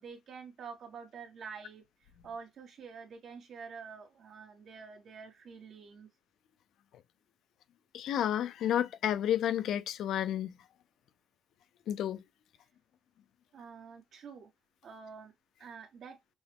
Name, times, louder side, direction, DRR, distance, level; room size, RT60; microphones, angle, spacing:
voice 1, 0.0-6.1 13.5-14.5 14.8-15.3 15.6-16.2, right 5 dB, 65° right, 1.4 m, -47 dB
voice 2, 7.9-10.5 11.9-12.2, left 10 dB, 75° left, 0.5 m, -31 dB
6.0 x 2.1 x 3.4 m
cardioid pair, 90°, 0 cm